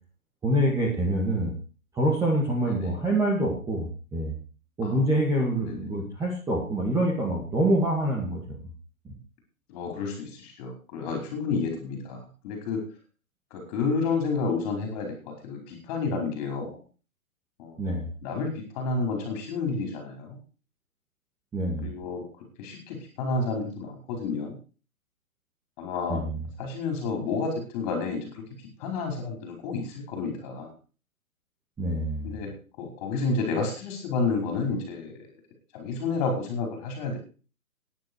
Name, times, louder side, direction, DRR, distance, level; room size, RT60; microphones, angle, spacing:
voice 1, 0.4-1.5 1.9-4.3 4.8-8.6 17.8-18.1 21.5-21.9 26.1-26.4 31.8-32.3, right 1 dB, 5° right, -3 dB, 2.1 m, -26 dB
voice 2, 2.6-2.9 4.8-5.1 5.6-5.8 9.7-12.8 13.5-16.8 17.6-17.8 18.2-20.4 21.8-22.2 22.6-24.6 25.8-26.2 26.6-30.7 32.2-35.1 35.7-37.2, left 4 dB, 25° left, 3 dB, 5.1 m, -30 dB
13.5 x 10.5 x 4.7 m, 0.36 s
hypercardioid pair, 155°, 43 cm